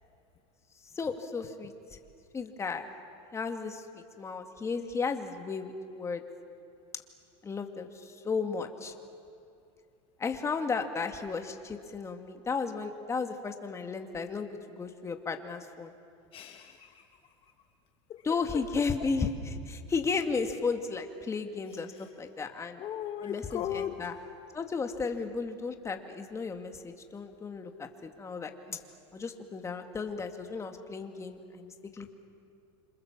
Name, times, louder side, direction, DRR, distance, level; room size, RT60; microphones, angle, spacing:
voice 1, 1.0-1.7 2.3-2.9 3.3-6.2 7.4-8.9 10.2-15.9 18.2-22.8 23.2-24.1 24.5-28.8 29.1-32.1, left 4 dB, 20° left, 5 dB, 2.3 m, -34 dB
voice 2, 16.3-17.0 18.1-18.8 22.8-24.1, left 10 dB, 40° left, 6 dB, 1.3 m, -38 dB
27.5 x 27.0 x 7.4 m, 2.6 s
supercardioid pair, 120°, 14 cm